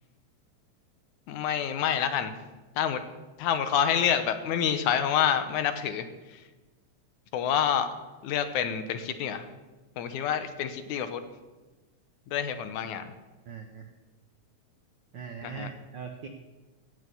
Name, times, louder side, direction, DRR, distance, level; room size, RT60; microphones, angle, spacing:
voice 1, 1.3-2.3 2.8-3.0 3.4-6.4 7.3-7.9 8.2-9.5 10.0-11.2 12.3-13.1 15.4-15.7, left 8 dB, 85° left, 9 dB, 2.4 m, -28 dB
voice 2, 13.5-13.9 15.1-16.3, right 6 dB, 90° right, 4 dB, 1.0 m, -40 dB
17.0 x 6.4 x 7.0 m, 1.2 s
omnidirectional pair, 3.4 m